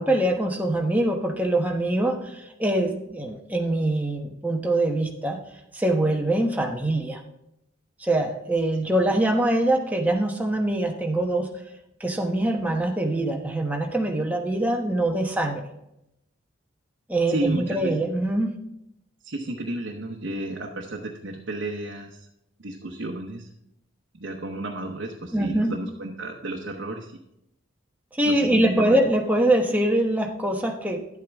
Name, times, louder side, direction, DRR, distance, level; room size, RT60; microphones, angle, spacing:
voice 1, 0.0-5.4 5.7-7.2 8.0-11.5 12.0-15.6 17.1-18.5 25.3-25.7 28.1-31.0, right 1 dB, 10° right, 2 dB, 1.0 m, -23 dB
voice 2, 17.3-18.0 19.2-22.3 22.6-23.5 24.2-27.2 28.2-29.0, right 1 dB, 65° right, 0 dB, 1.0 m, -32 dB
11.0 x 8.5 x 3.5 m, 0.82 s
head